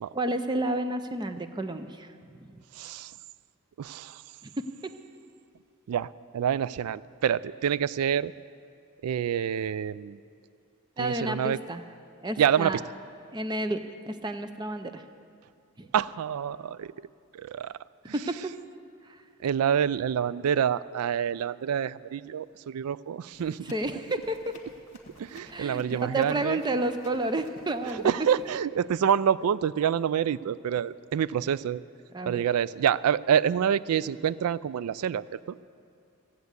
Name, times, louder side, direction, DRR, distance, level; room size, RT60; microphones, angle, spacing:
voice 1, 0.1-2.6 4.4-4.9 11.0-11.8 12.2-12.8 13.3-13.8 14.1-15.0 15.8-15.9 18.1-18.5 19.0-19.2 23.6-24.6 25.5-28.1 32.1-32.4, right 1 dB, 20° right, 9 dB, 0.5 m, -31 dB
voice 2, 2.8-3.1 3.8-4.2 5.9-8.3 9.0-10.2 11.0-11.6 12.4-12.8 15.9-16.9 17.3-17.7 19.4-23.7 25.2-26.6 27.9-31.8 32.3-35.6, right 8 dB, 85° right, 19 dB, 0.3 m, -27 dB
Run, 23.3-28.6, left 2 dB, 30° left, 1.4 m, -53 dB
15.0 x 8.2 x 8.1 m, 2.5 s
head